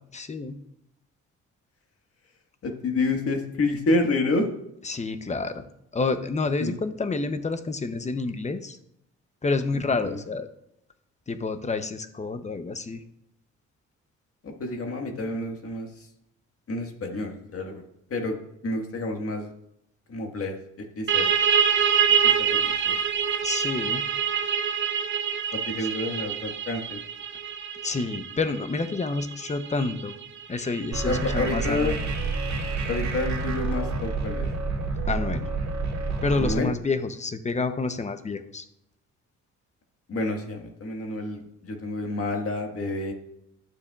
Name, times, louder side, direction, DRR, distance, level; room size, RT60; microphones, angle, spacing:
voice 1, 0.1-0.6 4.8-5.6 5.9-8.8 9.4-10.5 11.3-13.0 23.4-24.1 25.8-25.9 27.8-30.1 30.5-32.0 35.1-35.5 36.2-38.6, left 3 dB, 25° left, 10 dB, 0.8 m, -29 dB
voice 2, 2.6-4.5 6.6-6.7 9.7-10.2 14.4-15.9 16.7-17.8 18.1-18.3 18.6-19.5 20.1-21.3 22.2-23.0 25.5-27.0 31.0-31.9 32.9-34.5 36.4-36.7 40.1-43.1, left 2 dB, 50° left, 3 dB, 1.7 m, -29 dB
sound 1, 21.1-32.4, right 8 dB, 40° right, 0.7 m, -26 dB
sound 2, 30.9-36.5, right 3 dB, 65° right, 2.1 m, -28 dB
12.0 x 6.8 x 2.4 m, 0.77 s
cardioid pair, 90°, 30 cm